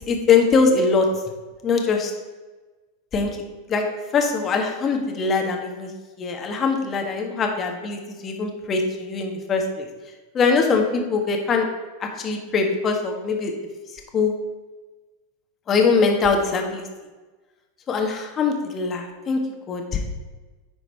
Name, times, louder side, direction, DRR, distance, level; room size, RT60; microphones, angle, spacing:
voice 1, 0.1-1.1 1.6-2.1 3.1-3.4 3.7-3.8 4.1-5.9 6.2-9.9 10.3-11.7 12.0-13.5 14.1-14.3 15.7-16.9 17.9-19.4 19.7-20.0, left 4 dB, 30° left, 3 dB, 1.5 m, -22 dB
10.5 x 4.0 x 4.5 m, 1.3 s
hypercardioid pair, 95°, 0 cm